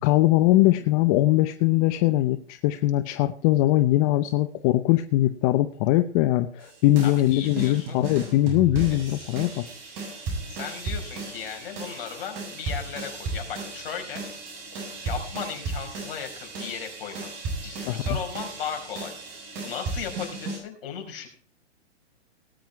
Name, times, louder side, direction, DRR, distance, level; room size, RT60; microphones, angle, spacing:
voice 1, 0.0-9.6 17.9-18.0, left 16 dB, 30° left, 9 dB, 0.8 m, -21 dB
sound 1, 6.6-20.6, right 3 dB, 35° right, 7.4 m, -35 dB
voice 2, 7.0-8.0 8.9-9.0 10.2-14.2 14.9-17.3 17.6-21.3, left 7 dB, 55° left, 4 dB, 5.8 m, -37 dB
19.0 x 9.3 x 4.6 m, 0.43 s
hypercardioid pair, 135°, 34 cm